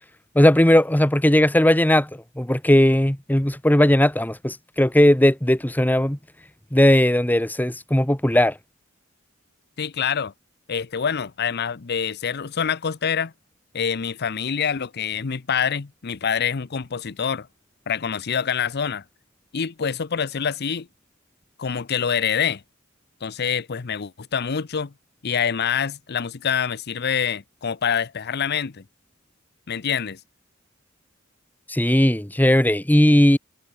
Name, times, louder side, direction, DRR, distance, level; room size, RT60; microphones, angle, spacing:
voice 1, 0.3-6.2 6.7-8.6 31.7-33.4, left 1 dB, 10° left, 1.2 m, -18 dB
voice 2, 9.8-10.3 10.7-13.3 13.7-17.5 17.9-19.0 19.5-20.9 21.6-22.6 23.2-24.9 25.2-28.8 29.7-30.2, left 7 dB, 50° left, 0.7 m, -26 dB
head